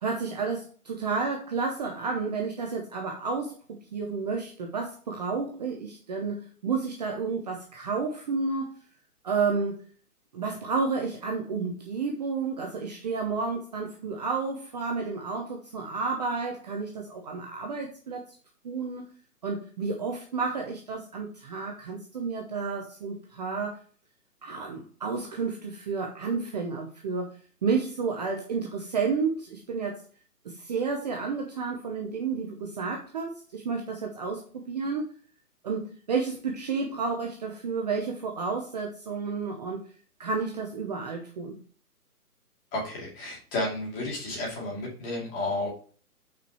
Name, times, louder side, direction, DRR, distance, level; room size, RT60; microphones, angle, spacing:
voice 1, 0.0-8.7 9.2-9.8 10.3-18.2 18.6-19.1 19.4-23.8 24.4-27.3 27.6-30.0 30.4-35.1 35.6-39.9 40.2-41.6, right 4 dB, 25° right, 1 dB, 0.7 m, -31 dB
voice 2, 42.7-45.7, left 2 dB, 20° left, -3 dB, 2.4 m, -32 dB
5.8 x 4.8 x 4.6 m, 0.42 s
hypercardioid pair, 145°, 46 cm